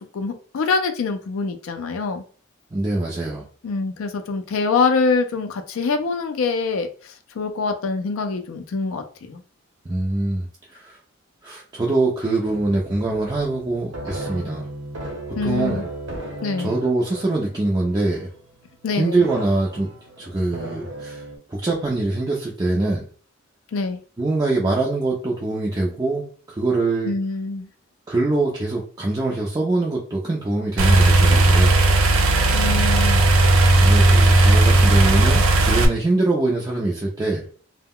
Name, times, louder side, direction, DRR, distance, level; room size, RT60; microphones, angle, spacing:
voice 1, 0.1-2.2 3.6-9.4 15.4-15.9 16.4-16.7 18.8-19.3 23.7-24.0 27.0-27.7 32.5-33.2, left 4 dB, 75° left, 6 dB, 0.4 m, -24 dB
voice 2, 2.7-3.4 9.9-11.0 11.4-14.7 15.3-15.8 16.6-18.3 19.0-19.9 20.2-21.2 21.5-23.0 24.2-27.1 28.1-31.8 33.8-37.4, right 2 dB, 20° right, -3 dB, 0.3 m, -23 dB
sound 1, 12.4-18.5 19.2-21.4, right 1 dB, 60° right, 0.9 m, -35 dB
sound 2, 30.8-35.9, right 2 dB, 80° right, 0.5 m, -15 dB
2.2 x 2.1 x 3.5 m, 0.43 s
head